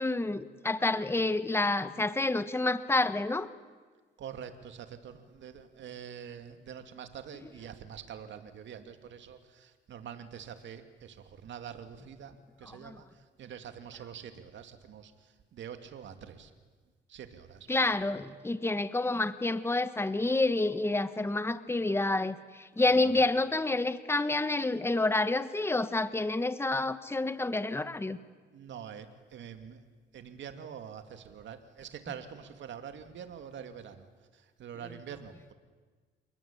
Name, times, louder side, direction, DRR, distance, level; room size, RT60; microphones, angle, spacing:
voice 1, 0.0-3.5 12.8-12.9 17.7-28.2, left 2 dB, 10° left, 12 dB, 1.4 m, -28 dB
voice 2, 4.2-16.5 17.1-17.7 22.9-23.3 28.5-29.8 30.1-35.5, right 8 dB, 70° right, 8 dB, 2.6 m, -45 dB
28.5 x 22.5 x 8.8 m, 1.4 s
cardioid pair, 90°, 20 cm